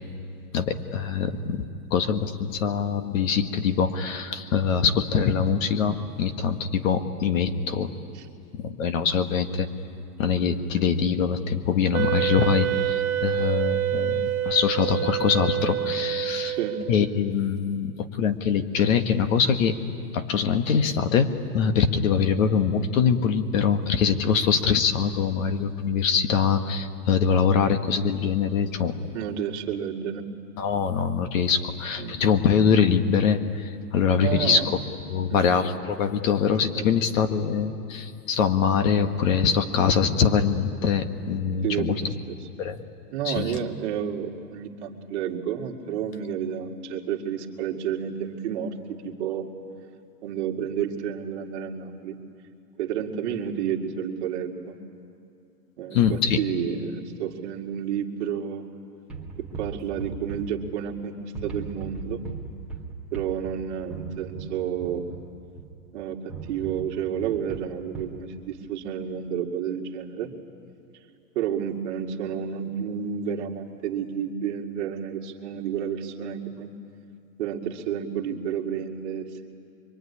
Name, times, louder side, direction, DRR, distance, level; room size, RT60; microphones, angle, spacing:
voice 1, 0.5-1.6 1.9-7.9 8.6-9.7 10.2-16.6 16.9-19.7 20.1-29.0 30.6-34.8 35.1-42.0 42.6-42.8 43.2-43.5 55.9-56.4, left 6 dB, 55° left, 8 dB, 1.7 m, -23 dB
Wind instrument woodwind instrument, 11.9-17.1, right 12 dB, 65° right, 1.2 m, -27 dB
voice 2, 16.4-16.8 29.1-30.3 32.0-32.2 34.2-34.7 35.3-35.5 36.7-36.9 41.6-42.4 43.1-49.5 50.2-52.2 52.8-54.7 55.8-58.7 59.4-61.1 61.4-62.2 63.1-65.0 65.9-70.3 71.4-76.7 77.4-79.5, right 8 dB, 45° right, 1 dB, 2.2 m, -30 dB
sound 1, 59.1-61.0 61.3-65.8 66.3-68.2, right 4 dB, ahead, 1.8 m, -38 dB
25.0 x 23.5 x 9.8 m, 2.5 s
hypercardioid pair, 155°, 48 cm